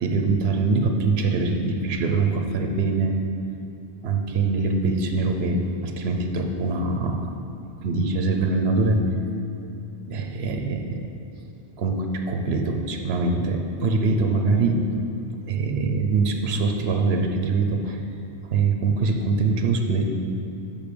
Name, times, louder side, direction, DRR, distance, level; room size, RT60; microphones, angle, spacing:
voice 1, 0.0-3.2 4.0-7.3 7.8-9.0 10.1-11.0 11.8-14.9 15.5-18.0 18.5-20.2, right 3 dB, 80° right, 4 dB, 0.9 m, -23 dB
5.6 x 5.3 x 6.7 m, 2.7 s
omnidirectional pair, 1.0 m